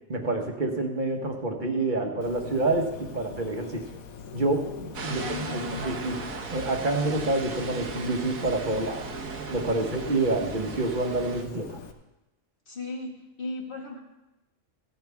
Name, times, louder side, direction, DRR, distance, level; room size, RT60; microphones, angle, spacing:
voice 1, 0.1-3.8 4.3-6.2 6.5-9.0 9.5-11.8, right 2 dB, 35° right, 3 dB, 1.4 m, -28 dB
Bird, 2.2-11.9, left 6 dB, 90° left, 1.4 m, -42 dB
sound 1, 4.9-11.4, right 5 dB, 90° right, 1.6 m, -37 dB
voice 2, 5.0-6.1 8.7-8.8 12.7-14.0, left 2 dB, 40° left, 0 dB, 2.0 m, -37 dB
15.5 x 11.0 x 3.5 m, 0.97 s
omnidirectional pair, 1.4 m